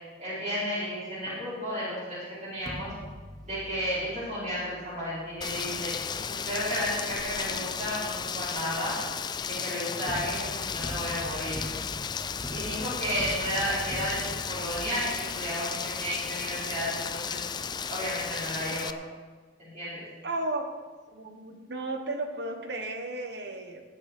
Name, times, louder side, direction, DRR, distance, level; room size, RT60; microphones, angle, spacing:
voice 1, 0.2-2.9 3.4-5.9 6.3-9.0 9.4-11.6 12.5-17.4 17.9-18.9 19.6-20.0, equal, 40° right, -9 dB, 4.4 m, -33 dB
sound 1, 2.6-7.7 10.1-14.8, equal, ahead, 1.2 m, -43 dB
Rain, 5.4-18.9, left 6 dB, 25° left, 0.3 m, -34 dB
voice 2, 20.2-20.7 21.1-23.8, right 2 dB, 65° right, 5 dB, 1.3 m, -34 dB
18.5 x 8.2 x 4.4 m, 1.4 s
head